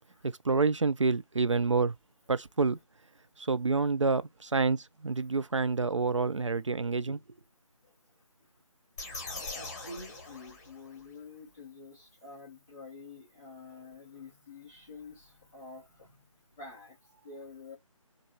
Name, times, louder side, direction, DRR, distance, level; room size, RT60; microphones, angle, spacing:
voice 1, 0.2-1.9 2.3-2.8 3.4-7.2, right 4 dB, 60° right, 0.5 m, -28 dB
sound 1, 9.0-11.1, left 3 dB, 30° left, 1.6 m, -42 dB
voice 2, 9.5-16.3 16.5-17.8, left 3 dB, 5° left, 0.4 m, -48 dB
4.6 x 2.5 x 2.7 m
figure-of-eight pair, 155°, 18 cm